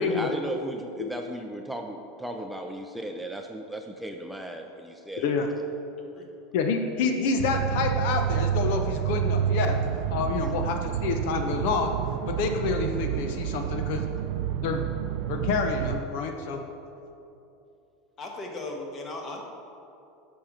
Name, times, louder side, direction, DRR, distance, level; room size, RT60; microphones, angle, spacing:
voice 1, 0.0-5.3, equal, 5° right, 3 dB, 0.4 m, -36 dB
voice 2, 6.5-9.8 10.1-11.9 12.3-14.0 14.6-14.8 15.3-16.6, left 5 dB, 70° left, 5 dB, 0.7 m, -28 dB
sound 1, 7.4-16.0, right 9 dB, 70° right, 0.3 m, -29 dB
voice 3, 18.2-19.4, left 2 dB, 30° left, 1 dB, 1.4 m, -37 dB
8.7 x 5.5 x 5.0 m, 2.7 s
supercardioid pair, 135°, 0 cm